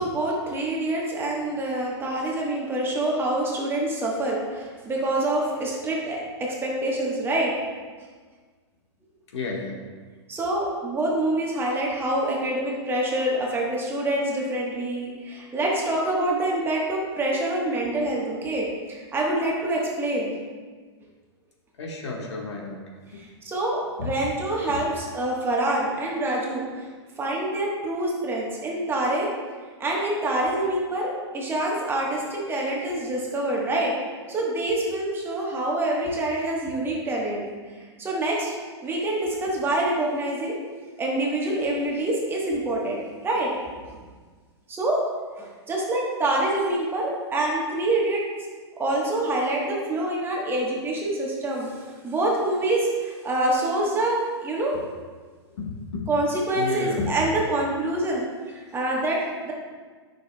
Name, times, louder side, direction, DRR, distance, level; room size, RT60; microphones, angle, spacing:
voice 1, 0.0-7.5 10.3-20.4 23.1-26.9 27.2-29.3 29.8-33.9 34.3-38.5 38.8-40.6 41.0-43.5 44.7-45.0 45.4-48.2 48.8-54.7 56.1-59.5, right 1 dB, 15° right, -3 dB, 1.2 m, -26 dB
voice 2, 9.3-9.8 21.8-22.8 23.1-23.2 24.0-24.1 24.7-24.8 35.3-35.5 55.5-56.1 56.5-57.1, left 4 dB, 75° left, 0 dB, 1.4 m, -32 dB
8.9 x 5.9 x 2.2 m, 1.5 s
hypercardioid pair, 130°, 15 cm